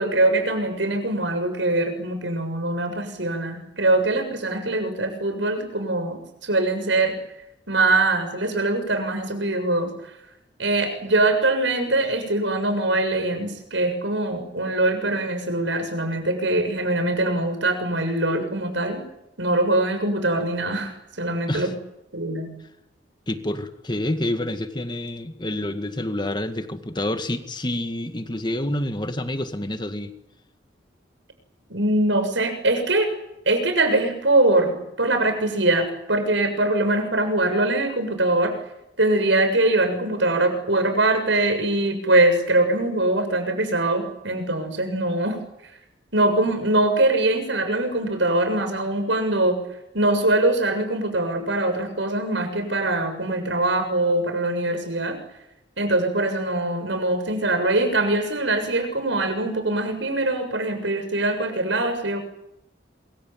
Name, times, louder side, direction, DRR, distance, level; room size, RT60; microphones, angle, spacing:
voice 1, 0.0-7.2 7.7-9.9 10.6-19.0 19.4-21.7 22.1-22.5 31.7-33.1 33.5-38.5 39.0-45.4 46.1-49.6 49.9-55.2 55.8-62.2, right 2 dB, 75° right, 7 dB, 7.1 m, -22 dB
voice 2, 23.3-30.1, left 1 dB, 25° left, 8 dB, 1.9 m, -28 dB
26.5 x 23.5 x 9.5 m, 0.84 s
head